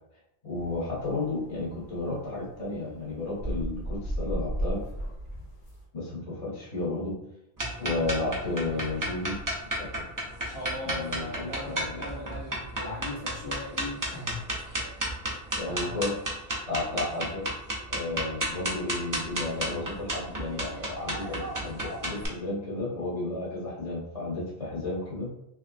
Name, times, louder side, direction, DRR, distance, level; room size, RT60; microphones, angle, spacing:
voice 1, 0.4-4.8 5.9-7.2 7.8-9.4 9.8-9.9 10.8-12.0 15.5-17.4 17.9-25.3, left 2 dB, 35° left, -7 dB, 0.9 m, -33 dB
sound 1, 0.6-5.8, right 1 dB, 55° left, 1.4 m, -35 dB
sound 2, 7.6-22.3, right 1 dB, 25° right, 0.5 m, -32 dB
voice 2, 10.5-14.5 14.7-15.0 15.6-16.0, left 1 dB, 80° left, -9 dB, 1.2 m, -38 dB
3.0 x 3.0 x 2.5 m, 0.84 s
omnidirectional pair, 1.0 m